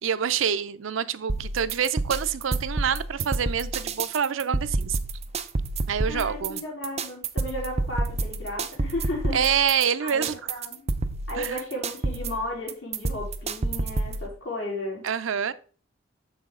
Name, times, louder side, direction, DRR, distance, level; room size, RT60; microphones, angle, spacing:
voice 1, 0.0-5.0 5.9-6.6 9.3-10.4 11.4-11.6 15.0-15.5, right 7 dB, 85° right, 0.5 m, -26 dB
sound 1, 1.3-14.3, right 2 dB, 35° right, 0.6 m, -29 dB
voice 2, 6.1-9.4 10.0-10.9 11.3-15.1, left 1 dB, 75° left, 3.8 m, -34 dB
7.0 x 6.1 x 3.7 m
head